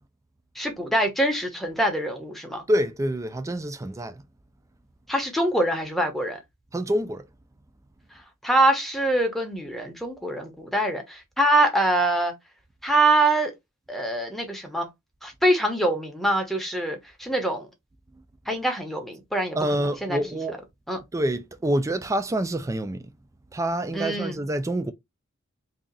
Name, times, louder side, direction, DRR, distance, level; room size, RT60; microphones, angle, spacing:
voice 1, 0.6-2.6 5.1-6.4 8.4-12.3 12.8-13.5 13.9-14.9 15.2-17.7 18.5-19.6 19.8-20.2 20.9-21.0 23.9-24.4, right 1 dB, ahead, 0.8 m, -24 dB
voice 2, 2.7-4.2 6.7-7.3 18.1-18.2 19.5-20.6 21.1-23.1 23.5-24.9, right 1 dB, 15° right, 0.4 m, -27 dB
2.7 x 2.4 x 3.7 m
head